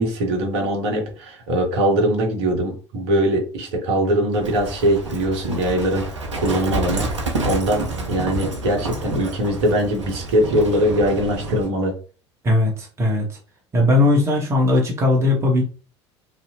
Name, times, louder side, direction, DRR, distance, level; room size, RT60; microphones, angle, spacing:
voice 1, 0.0-6.1 6.4-11.9, right 1 dB, 60° right, 2 dB, 0.9 m, -21 dB
Livestock farm animals working animals, 4.3-11.7, right 2 dB, 80° right, 0.6 m, -29 dB
voice 2, 12.4-13.3 13.7-15.6, left 2 dB, 20° right, -1 dB, 0.9 m, -18 dB
2.6 x 2.1 x 2.8 m, 0.37 s
figure-of-eight pair, 70°, 15 cm